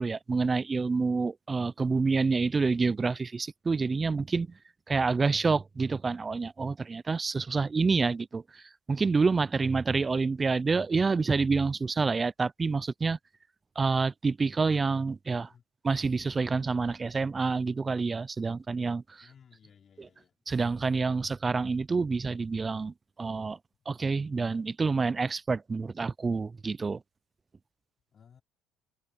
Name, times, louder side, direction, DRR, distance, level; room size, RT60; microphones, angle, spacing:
voice 1, 0.0-4.5 4.9-8.4 8.9-13.2 13.8-15.5 15.8-19.3 20.0-20.1 20.5-23.6 23.9-27.0, right 4 dB, 25° right, 0.4 m, -28 dB
voice 2, 19.2-20.3 28.1-28.4, left 7 dB, 40° left, 4.2 m, -58 dB
supercardioid pair, 95°, 0 cm